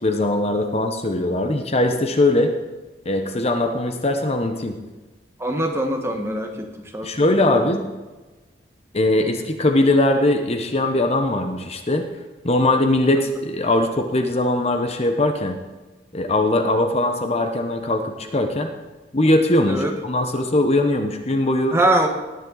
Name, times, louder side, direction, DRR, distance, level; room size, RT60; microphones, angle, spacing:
voice 1, 0.0-2.5 3.0-4.8 7.0-7.9 8.9-12.0 12.4-15.6 16.1-18.7 19.1-21.8, left 1 dB, 35° left, 6 dB, 1.0 m, -20 dB
voice 2, 5.4-7.7 19.7-20.0 21.7-22.1, right 1 dB, 15° right, 3 dB, 1.4 m, -23 dB
18.0 x 9.7 x 4.0 m, 1.2 s
head